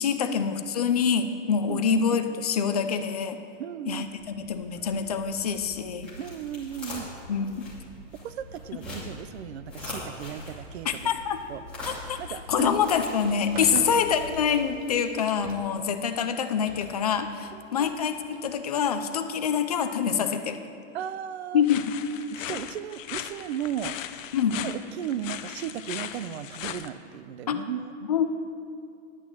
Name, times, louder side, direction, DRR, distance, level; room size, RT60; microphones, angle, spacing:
voice 1, 0.0-3.4 3.9-4.1 4.4-6.1 7.3-7.7 10.9-11.4 11.9-12.2 12.5-20.6 21.5-21.9 24.3-24.6 27.5-27.6 28.1-28.3, left 7 dB, 35° left, 8 dB, 0.4 m, -26 dB
voice 2, 3.6-4.1 6.2-7.1 8.2-10.9 11.5-11.6 12.2-12.7 13.7-13.9 17.5-17.9 20.9-21.6 22.3-23.9 24.6-27.9, right 9 dB, 60° right, 14 dB, 0.6 m, -35 dB
sound 1, 4.0-15.0, left 1 dB, 5° left, 2.6 m, -42 dB
sound 2, 10.8-19.5, right 3 dB, 40° right, 1.3 m, -47 dB
sound 3, 21.6-26.9, left 10 dB, 85° left, 0.8 m, -38 dB
11.0 x 6.1 x 8.6 m, 2.5 s
supercardioid pair, 175°, 38 cm